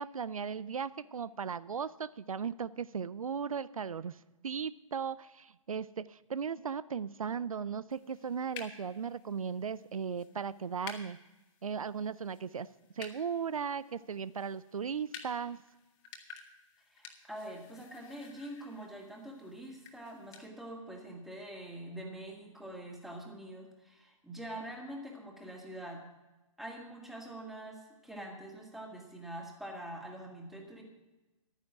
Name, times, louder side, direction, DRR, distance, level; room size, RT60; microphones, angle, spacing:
voice 1, 0.0-11.2 11.6-12.7 13.0-15.6, right 6 dB, 85° right, 18 dB, 0.4 m, -37 dB
sound 1, 7.9-20.5, left 7 dB, 30° left, 1.4 m, -53 dB
voice 2, 16.9-26.0 26.6-30.8, right 1 dB, ahead, 0 dB, 1.8 m, -45 dB
11.5 x 9.4 x 6.0 m, 1.1 s
figure-of-eight pair, 135°, 17 cm